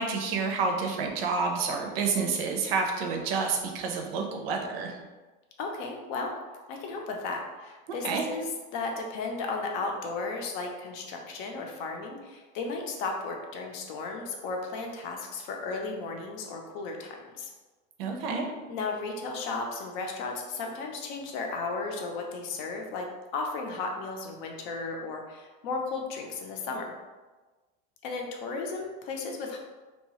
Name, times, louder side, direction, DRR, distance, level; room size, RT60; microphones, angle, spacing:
voice 1, 0.0-5.0 7.9-8.2 18.0-18.5, right 4 dB, 85° right, 3 dB, 0.6 m, -29 dB
voice 2, 5.6-6.3 6.7-17.5 18.7-23.1 23.3-26.9 28.0-29.6, left 3 dB, 55° left, 2 dB, 0.5 m, -34 dB
2.7 x 2.3 x 2.9 m, 1.2 s
supercardioid pair, 165°, 29 cm